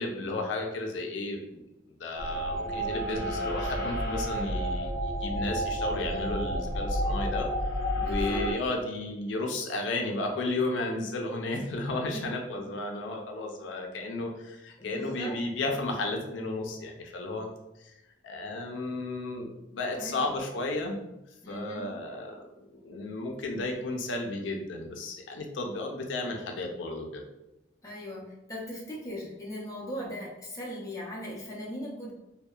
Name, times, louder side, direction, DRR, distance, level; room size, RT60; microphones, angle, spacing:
voice 1, 0.0-1.6 2.0-7.5 8.0-17.5 17.8-17.9 18.2-21.0 21.5-27.2, left 2 dB, 80° left, 2 dB, 0.4 m, -33 dB
sound 1, 2.1-8.5, equal, 50° left, 0.7 m, -30 dB
voice 2, 8.0-8.5 12.1-12.3 14.8-15.4 19.8-20.4 21.4-21.9 27.8-32.1, equal, 15° left, -4 dB, 0.5 m, -39 dB
2.6 x 2.1 x 2.3 m, 0.92 s
head